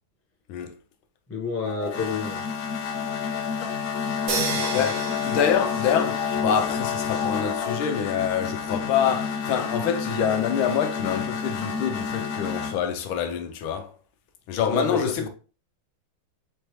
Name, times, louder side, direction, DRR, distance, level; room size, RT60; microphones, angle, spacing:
voice 1, 1.3-2.4 4.6-4.9 14.7-15.3, left 4 dB, 15° left, 0.6 m, -30 dB
sound 1, 1.6-12.7, left 6 dB, 60° left, 1.1 m, -29 dB
sound 2, 4.3-6.4, right 5 dB, 55° right, 1.0 m, -31 dB
voice 2, 4.7-13.9 14.5-15.3, left 8 dB, 90° left, 1.5 m, -26 dB
4.4 x 3.3 x 3.0 m
omnidirectional pair, 2.2 m